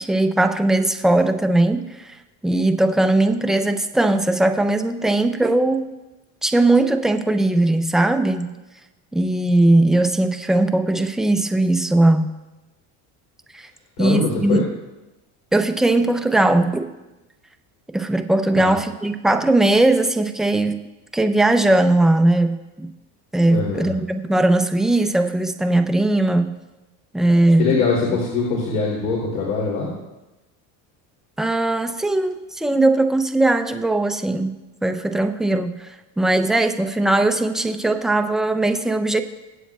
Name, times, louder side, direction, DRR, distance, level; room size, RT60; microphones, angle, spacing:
voice 1, 0.0-2.1 2.4-5.9 6.4-8.5 9.1-12.3 13.5-13.7 14.0-14.6 15.5-16.9 17.9-20.8 21.1-22.9 23.3-26.5 27.1-27.8 31.4-34.5 34.8-35.9 36.2-39.2, right 2 dB, ahead, 7 dB, 0.4 m, -19 dB
voice 2, 14.0-14.6 18.6-18.7 23.5-23.9 27.6-29.9, left 4 dB, 80° left, -4 dB, 3.0 m, -22 dB
23.0 x 8.3 x 2.3 m, 1.0 s
cardioid pair, 145°, 35 cm